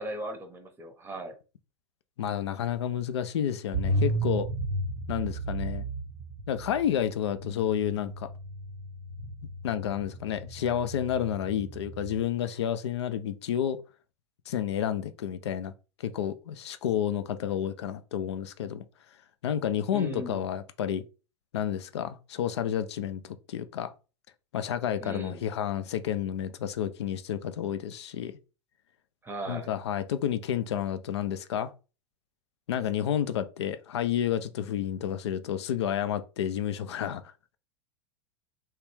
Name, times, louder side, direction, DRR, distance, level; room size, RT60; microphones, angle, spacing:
voice 1, 0.0-1.3 19.9-20.5 25.0-25.4 29.2-29.7, right 1 dB, 15° right, 0.7 m, -37 dB
voice 2, 2.2-4.5 5.1-5.9 6.5-8.3 9.6-13.8 14.5-15.7 16.0-18.8 19.4-21.0 21.5-23.9 24.5-28.3 29.5-31.7 32.7-37.3, left 10 dB, 65° left, 0.4 m, -30 dB
sound 1, 3.7-12.2, right 2 dB, 65° right, 0.7 m, -34 dB
3.2 x 2.3 x 3.0 m
figure-of-eight pair, 90°, 15 cm